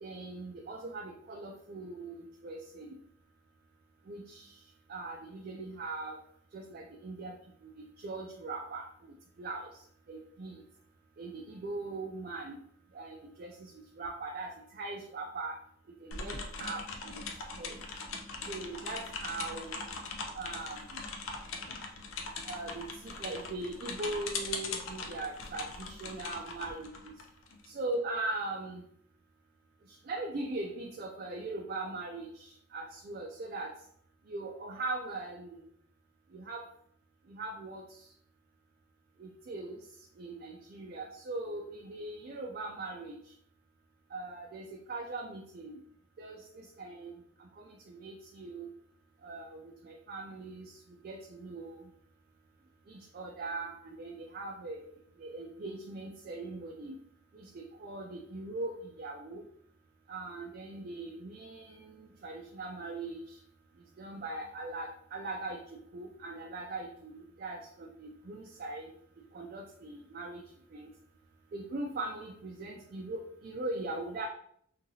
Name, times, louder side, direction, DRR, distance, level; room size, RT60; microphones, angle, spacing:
voice 1, 0.0-2.9 4.1-4.5 4.9-6.2 6.5-7.3 7.6-8.9 9.4-9.7 10.1-10.6 11.2-12.6 12.9-15.6 15.9-17.2 17.6-17.8 18.5-19.8 20.4-20.8 22.4-27.1 27.6-28.8 30.1-33.7 34.3-35.6 36.3-36.7 37.3-37.8 39.2-39.8 40.2-43.2 44.1-45.8 46.2-47.2 47.6-48.7 49.2-50.8 51.0-51.9 52.9-54.9 55.2-56.9 57.3-59.4 60.1-63.4 64.0-68.9 69.3-70.4 70.7-70.9 71.5-74.3, right 2 dB, 45° right, 1 dB, 0.3 m, -40 dB
sound 1, 16.1-27.7, left 4 dB, 75° left, 0.5 m, -41 dB
2.8 x 2.7 x 2.7 m, 0.66 s
head